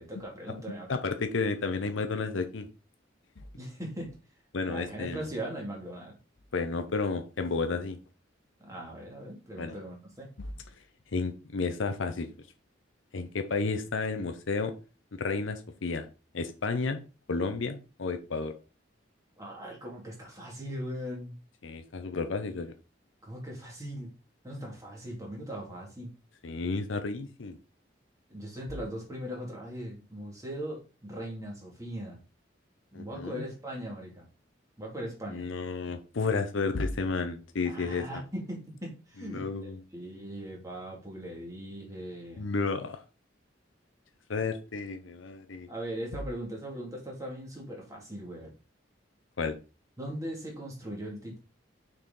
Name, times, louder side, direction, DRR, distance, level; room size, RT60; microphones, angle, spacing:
voice 1, 0.0-1.0 3.6-4.2 4.6-6.2 8.6-10.3 19.4-21.4 23.2-24.1 24.4-26.1 28.3-32.2 32.9-34.3 34.8-35.5 37.7-42.5 45.7-48.5 50.0-51.4, right 1 dB, 15° right, -1 dB, 2.1 m, -39 dB
voice 2, 0.9-2.7 4.5-5.2 6.5-8.0 9.6-9.8 10.4-10.5 11.1-12.3 13.1-14.7 15.2-16.1 16.3-17.0 17.3-18.5 21.6-22.7 26.4-27.6 32.9-33.5 35.3-38.2 39.3-39.8 42.4-43.0 44.3-45.7 49.4-49.5, left 4 dB, 85° left, 8 dB, 0.7 m, -32 dB
6.5 x 4.3 x 3.7 m, 0.32 s
head